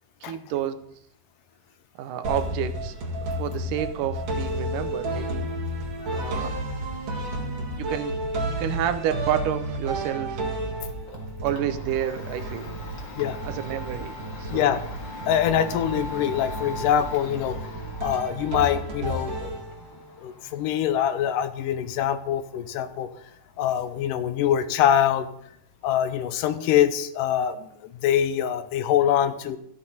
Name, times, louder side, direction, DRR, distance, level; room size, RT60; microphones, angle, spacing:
voice 1, 0.2-0.8 2.0-2.9 3.4-5.5 6.1-6.6 7.7-8.3 8.6-10.4 11.4-12.7 13.5-14.8, right 10 dB, 85° right, 11 dB, 2.3 m, -29 dB
sound 1, 2.2-20.1, right 1 dB, 45° right, 2.1 m, -32 dB
Domestic sounds home sounds, 10.6-26.5, left 2 dB, 45° left, 1.9 m, -42 dB
voice 2, 14.5-14.8 15.3-17.6 18.0-19.5 20.2-23.1 23.6-25.3 25.8-29.6, left 10 dB, 90° left, 11 dB, 2.3 m, -24 dB
14.0 x 8.0 x 4.2 m, 0.70 s
omnidirectional pair, 3.7 m